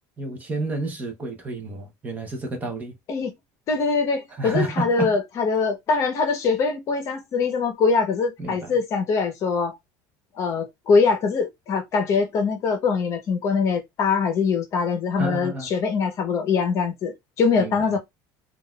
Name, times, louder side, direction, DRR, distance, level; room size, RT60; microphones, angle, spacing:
voice 1, 0.2-2.9 4.3-5.2 8.4-8.8 15.2-15.7 17.5-17.9, right 2 dB, 20° right, 0.7 m, -30 dB
voice 2, 3.7-9.8 10.4-18.0, left 5 dB, 35° left, 0.8 m, -23 dB
3.8 x 2.4 x 2.3 m
cardioid pair, 170°, 8 cm